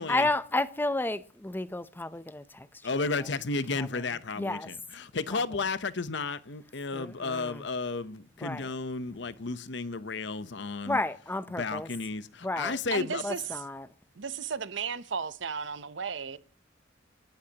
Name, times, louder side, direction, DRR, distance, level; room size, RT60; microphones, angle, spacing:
voice 1, 0.0-2.4 3.8-3.9 4.4-4.7 5.3-5.4 6.9-7.6 8.4-8.6 10.9-11.9 12.4-12.8 13.2-13.8, left 2 dB, 10° left, 0.6 m, -31 dB
voice 2, 2.8-11.0 11.5-13.2, left 3 dB, 65° left, 0.9 m, -33 dB
voice 3, 12.9-13.6 14.2-16.4, right 6 dB, 70° right, 0.8 m, -34 dB
28.0 x 11.5 x 2.9 m
head